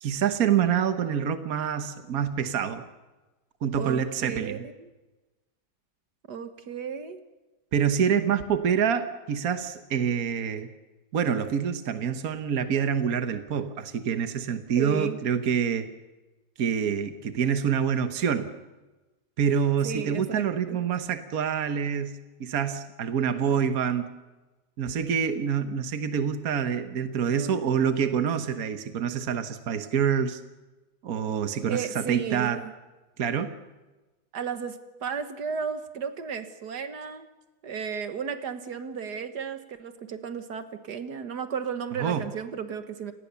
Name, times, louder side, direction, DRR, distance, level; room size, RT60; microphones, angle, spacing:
voice 1, 0.0-2.8 3.6-4.6 7.7-10.7 11.1-15.9 16.6-18.5 19.4-24.1 24.8-30.4 31.0-32.6 33.2-33.5 42.0-42.2, right 7 dB, 65° right, 9 dB, 1.6 m, -26 dB
voice 2, 3.8-4.9 6.3-7.2 14.8-15.2 19.8-20.8 27.3-27.6 31.7-32.7 34.3-37.3 37.6-43.1, right 6 dB, 80° right, 9 dB, 2.0 m, -34 dB
29.0 x 19.0 x 7.0 m, 1.1 s
omnidirectional pair, 1.7 m